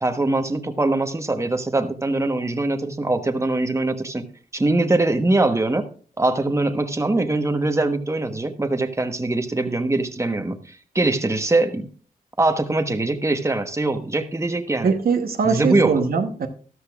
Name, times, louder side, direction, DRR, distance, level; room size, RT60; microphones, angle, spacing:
voice 1, 0.0-4.3 4.5-5.8 6.2-11.9 12.4-14.9 15.4-15.9, right 2 dB, 20° right, 7 dB, 1.1 m, -22 dB
voice 2, 14.8-16.5, right 5 dB, 75° right, 6 dB, 1.1 m, -21 dB
13.5 x 12.5 x 2.4 m, 0.40 s
cardioid pair, 70°, 16 cm